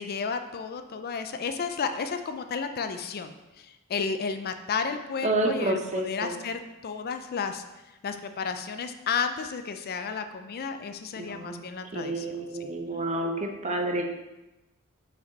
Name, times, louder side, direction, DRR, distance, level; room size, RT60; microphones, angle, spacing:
voice 1, 0.0-7.6 8.0-12.7, left 5 dB, 45° left, 8 dB, 0.4 m, -32 dB
voice 2, 5.2-6.4 11.2-11.6 11.9-14.0, right 2 dB, 35° right, 3 dB, 0.7 m, -29 dB
5.3 x 5.2 x 3.9 m, 1.0 s
head